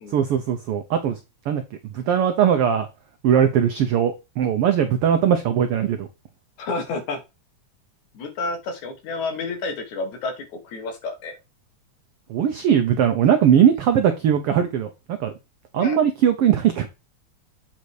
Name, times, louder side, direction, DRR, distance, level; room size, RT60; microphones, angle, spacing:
voice 1, 0.1-1.2 1.5-1.6 1.9-2.9 3.2-6.1 12.3-15.3 15.7-16.9, right 9 dB, 85° right, 1.2 m, -20 dB
voice 2, 6.6-7.2 8.1-11.3 15.7-16.0, left 3 dB, 70° left, 2.8 m, -30 dB
7.9 x 4.3 x 4.8 m
omnidirectional pair, 3.6 m